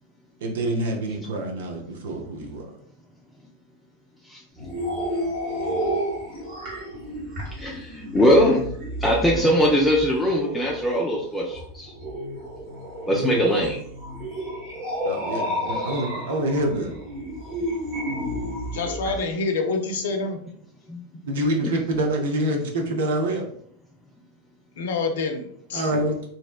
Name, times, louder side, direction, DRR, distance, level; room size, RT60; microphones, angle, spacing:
voice 1, 0.4-2.7 13.1-13.4 15.1-16.9 21.2-23.5 25.7-26.3, right 1 dB, 70° right, 2 dB, 0.5 m, -26 dB
sound 1, 4.6-19.2, equal, 55° right, 1.2 m, -31 dB
voice 2, 7.6-8.6 9.0-11.9 13.1-13.8 20.9-21.0, equal, 10° left, -3 dB, 0.4 m, -21 dB
voice 3, 18.7-20.4 24.8-25.9, left 3 dB, 70° left, 5 dB, 0.4 m, -27 dB
2.7 x 2.1 x 2.3 m, 0.65 s
hypercardioid pair, 90°, 0 cm